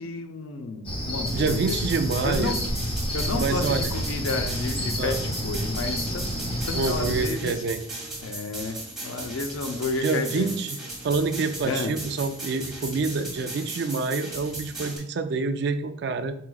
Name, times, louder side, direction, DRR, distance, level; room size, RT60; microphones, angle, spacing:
voice 1, 0.0-1.8 2.2-2.7 3.1-7.6 8.2-10.6 11.6-12.0, left 3 dB, 85° left, 6 dB, 0.5 m, -31 dB
Cricket, 0.8-7.3, equal, 25° left, 0.6 m, -29 dB
sound 1, 1.3-15.0, right 2 dB, ahead, 1.2 m, -37 dB
voice 2, 1.3-2.6 3.3-3.9 5.0-5.2 6.7-7.8 10.0-10.8 11.0-16.3, right 4 dB, 55° right, 8 dB, 0.3 m, -27 dB
4.6 x 4.0 x 2.3 m, 0.71 s
head